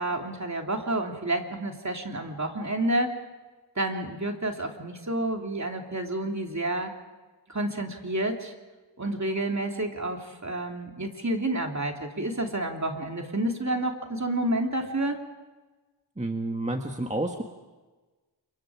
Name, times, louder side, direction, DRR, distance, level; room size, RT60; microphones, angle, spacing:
voice 1, 0.0-3.1 3.8-6.9 7.5-8.5 9.0-15.2, right 1 dB, 40° right, 3 dB, 3.0 m, -29 dB
voice 2, 16.2-17.4, right 2 dB, 15° right, 3 dB, 1.8 m, -30 dB
28.0 x 23.5 x 4.9 m, 1.2 s
cardioid pair, 50°, 45 cm